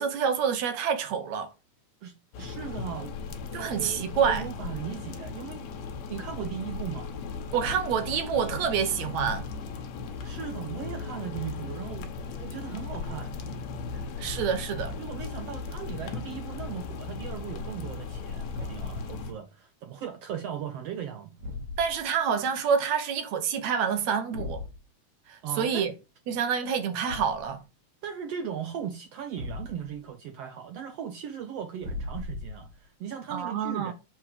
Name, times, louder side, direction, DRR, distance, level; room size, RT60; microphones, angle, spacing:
voice 1, 0.0-1.5 3.5-4.5 7.5-9.5 14.2-15.0 21.8-24.6 25.3-25.9 26.3-27.6 33.3-33.9, right 7 dB, 65° right, 2.1 m, -27 dB
voice 2, 2.0-3.1 3.5-5.6 6.1-7.1 10.2-12.1 12.4-13.3 13.9-14.0 15.0-21.3 25.4-25.9 28.0-33.9, right 8 dB, 80° right, 1.4 m, -38 dB
sound 1, 2.3-19.3, left 5 dB, 65° left, 2.2 m, -37 dB
Thump thud, 18.5-19.0 21.4-22.1 24.3-24.8 27.1-27.5 29.4-30.0 31.8-32.8, left 2 dB, 40° right, 2.0 m, -38 dB
7.3 x 4.8 x 4.8 m
omnidirectional pair, 3.8 m